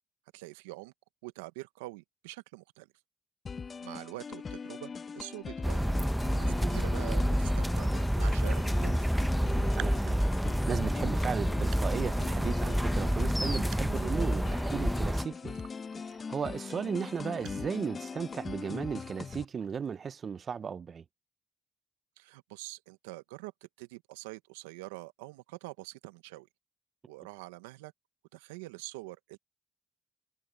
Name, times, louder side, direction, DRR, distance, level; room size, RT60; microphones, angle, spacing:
voice 1, 0.3-0.9 1.2-2.9 3.8-5.9 6.3-9.1 22.2-26.5 27.0-27.9 28.3-29.4, right 21 dB, 85° right, 1.1 m, -45 dB
sound 1, 3.5-19.5, left 5 dB, 45° left, 1.0 m, -41 dB
sound 2, 5.6-15.2, equal, 5° right, 1.1 m, -28 dB
Raindrop, 9.3-20.0, right 12 dB, 70° right, 5.4 m, -53 dB
voice 2, 9.7-15.6 16.0-21.0, right 6 dB, 50° right, 0.8 m, -36 dB
hypercardioid pair, 45°, 0 cm